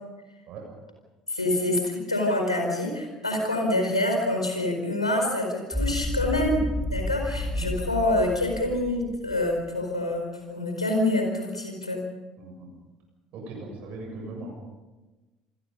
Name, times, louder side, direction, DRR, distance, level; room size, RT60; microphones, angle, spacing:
voice 1, 1.3-6.6 6.9-12.0, left 1 dB, 85° left, 3 dB, 4.6 m, -26 dB
sound 1, 5.7-9.6, left 1 dB, ahead, 5.0 m, -31 dB
voice 2, 7.5-7.8 12.4-12.7 13.3-14.5, right 2 dB, 50° right, 1 dB, 7.0 m, -39 dB
28.5 x 20.5 x 5.5 m, 1.2 s
figure-of-eight pair, 60°, 3 cm